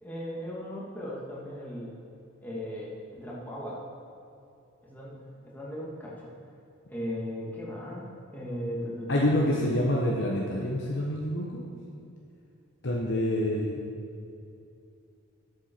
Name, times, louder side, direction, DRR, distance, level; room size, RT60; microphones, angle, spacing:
voice 1, 0.0-1.9 2.4-2.9 3.2-3.8 4.8-6.3 6.9-8.1 8.3-9.8, equal, 10° left, -6 dB, 1.8 m, -37 dB
voice 2, 9.1-11.6 12.8-13.8, left 1 dB, 55° left, -3 dB, 1.0 m, -27 dB
11.5 x 7.9 x 4.5 m, 2.6 s
head